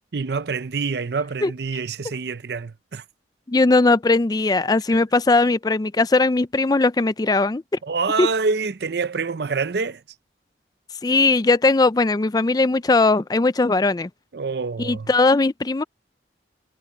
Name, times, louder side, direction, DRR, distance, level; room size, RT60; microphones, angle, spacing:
voice 1, 0.1-3.0 4.9-5.0 7.8-10.0 14.3-15.1, right 4 dB, 60° right, 0.6 m, -26 dB
voice 2, 3.5-7.6 8.2-8.3 11.0-14.1 14.8-15.8, left 3 dB, 20° left, 0.4 m, -19 dB
head